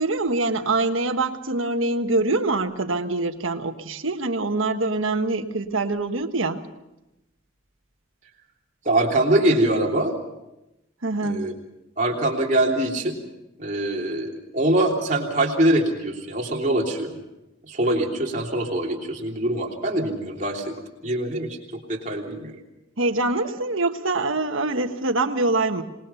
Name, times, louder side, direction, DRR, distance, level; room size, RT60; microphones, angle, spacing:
voice 1, 0.0-6.6 11.0-11.4 23.0-25.8, right 2 dB, 85° right, 7 dB, 1.5 m, -24 dB
voice 2, 8.8-10.2 11.2-11.5 12.0-13.2 13.6-17.2 17.6-20.7 21.0-22.6, right 1 dB, 40° right, 0 dB, 3.3 m, -23 dB
27.0 x 20.0 x 5.7 m, 0.94 s
head